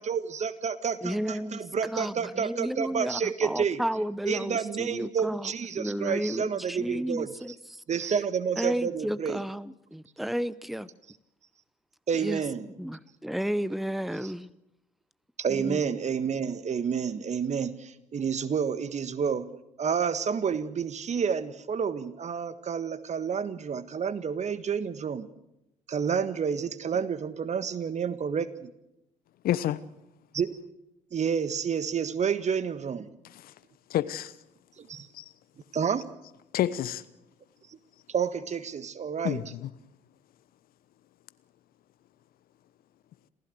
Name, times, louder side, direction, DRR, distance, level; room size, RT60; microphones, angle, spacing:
voice 1, 0.0-3.8 4.3-7.3 7.9-9.4 12.1-12.7 14.2-14.3 15.4-25.3 25.9-28.7 30.3-30.7 31.1-33.1 34.8-35.1 35.7-36.1 37.7-37.8 38.1-39.4, right 6 dB, 40° right, 1.6 m, -29 dB
voice 2, 1.0-5.5 5.8-7.8 8.6-10.9 12.2-12.4 12.8-14.5 15.5-15.8, equal, ahead, 0.9 m, -32 dB
voice 3, 29.4-29.8 33.3-33.5 33.9-34.3 35.1-35.3 36.5-37.0 39.2-39.7, left 12 dB, 55° left, 1.0 m, -29 dB
27.5 x 15.5 x 7.9 m
figure-of-eight pair, 50°, 18 cm